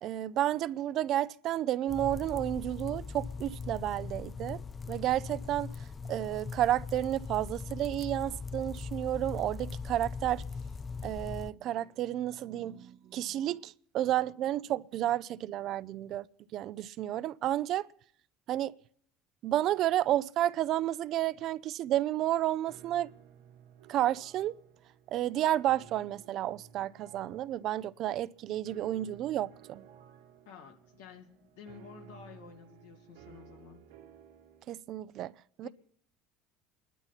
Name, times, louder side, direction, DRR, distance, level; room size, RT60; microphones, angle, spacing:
voice 1, 0.0-4.6 4.9-5.7 6.1-10.4 11.0-16.3 16.5-17.9 18.5-18.7 19.4-23.1 23.9-24.5 25.1-29.8 34.7-35.3 35.6-35.7, right 13 dB, 60° right, 0.6 m, -31 dB
sound 1, 1.9-11.5, left 5 dB, 30° left, 0.6 m, -40 dB
sound 2, 22.7-34.7, right 8 dB, 85° right, 2.6 m, -56 dB
voice 2, 30.4-33.8 35.6-35.7, left 7 dB, 85° left, 2.9 m, -51 dB
29.0 x 11.5 x 4.2 m
hypercardioid pair, 80°, 0 cm